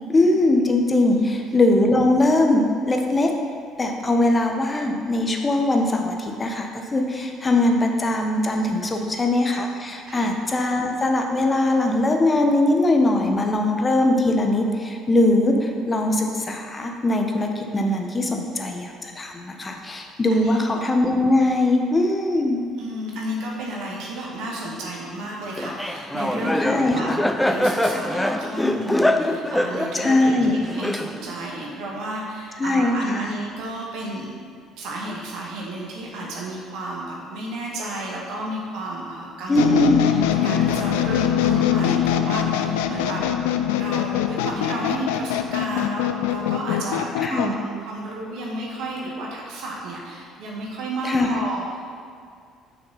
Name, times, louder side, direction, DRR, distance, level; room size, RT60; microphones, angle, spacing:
voice 1, 0.1-3.3 3.8-22.6 26.6-27.2 29.9-30.5 32.6-33.3 39.5-40.1 47.2-47.5 51.0-51.3, left 2 dB, 25° left, 3 dB, 1.2 m, -21 dB
voice 2, 1.0-1.3 8.8-9.1 10.0-10.3 20.3-20.6 22.5-27.1 27.5-34.3 34.8-43.3 43.7-51.6, right 1 dB, 65° right, -3 dB, 1.5 m, -32 dB
Laughter, 25.6-31.4, left 1 dB, 5° left, 0.5 m, -24 dB
sound 1, 39.6-47.5, left 10 dB, 75° left, 0.3 m, -23 dB
6.7 x 5.6 x 5.7 m, 2.1 s
hypercardioid pair, 55°, 0 cm